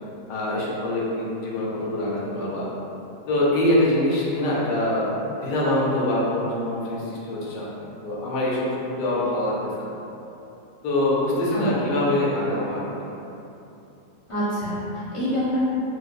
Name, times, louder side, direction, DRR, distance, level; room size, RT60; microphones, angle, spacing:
voice 1, 0.3-2.7 3.3-5.2 5.4-9.9 10.8-13.1, left 1 dB, 80° left, -5 dB, 1.2 m, -24 dB
voice 2, 11.5-11.8 14.3-15.6, equal, 25° left, -11 dB, 0.7 m, -26 dB
4.6 x 2.1 x 2.4 m, 2.8 s
omnidirectional pair, 1.8 m